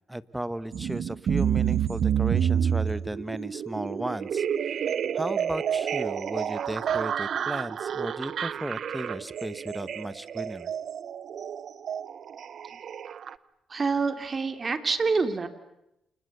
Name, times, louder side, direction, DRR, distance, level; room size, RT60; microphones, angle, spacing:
voice 1, 0.1-4.8 5.1-10.7, right 1 dB, 10° right, 16 dB, 1.5 m, -35 dB
sound 1, 0.7-13.3, right 8 dB, 65° right, 1.0 m, -29 dB
voice 2, 13.7-15.5, right 4 dB, 45° right, 9 dB, 3.3 m, -26 dB
29.5 x 28.5 x 7.0 m, 0.86 s
supercardioid pair, 55°, 0 cm